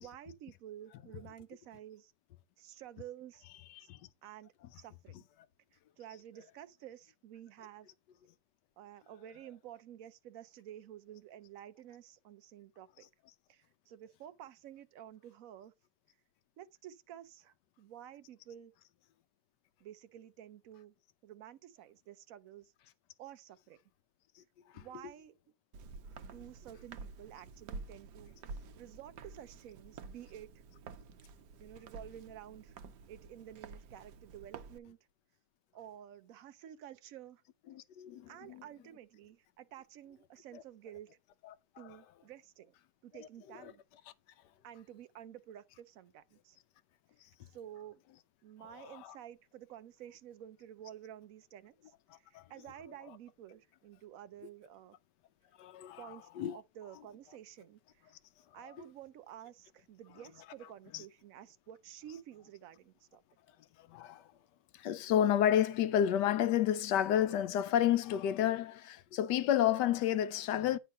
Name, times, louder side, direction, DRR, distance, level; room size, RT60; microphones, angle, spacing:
voice 1, 0.0-2.1 2.6-3.4 3.8-3.9 4.2-5.2 6.0-7.9 8.8-13.1 13.5-15.7 16.6-18.7 19.8-20.9 21.2-22.7 23.2-23.8 24.7-25.3 26.2-28.4 28.8-30.5 31.6-32.8 33.1-35.0 35.7-37.4 38.3-41.1 41.8-42.7 43.0-43.8 44.6-46.6 47.5-48.0 48.4-51.7 52.3-55.0 56.0-58.1 58.5-63.2, right 11 dB, 65° right, 0.9 m, -51 dB
Walk footsteps, 25.7-34.8, right 4 dB, 85° right, 1.4 m, -50 dB
voice 2, 37.7-38.6 40.5-40.6 41.8-41.9 48.6-49.1 52.3-52.4 55.6-56.6 60.9-61.0 63.9-64.2 64.8-70.8, left 10 dB, 85° left, 1.3 m, -30 dB
9.4 x 3.7 x 5.3 m
omnidirectional pair, 1.8 m